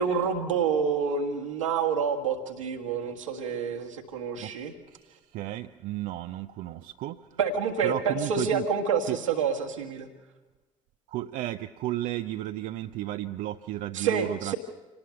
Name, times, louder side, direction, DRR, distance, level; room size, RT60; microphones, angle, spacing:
voice 1, 0.0-4.7 7.4-10.1 13.9-14.6, right 6 dB, 80° right, 1.6 m, -28 dB
voice 2, 4.9-7.3 7.8-8.7 9.1-9.2 11.1-14.5, right 14 dB, 55° right, 0.6 m, -33 dB
27.0 x 18.5 x 5.7 m
figure-of-eight pair, 45°, 16 cm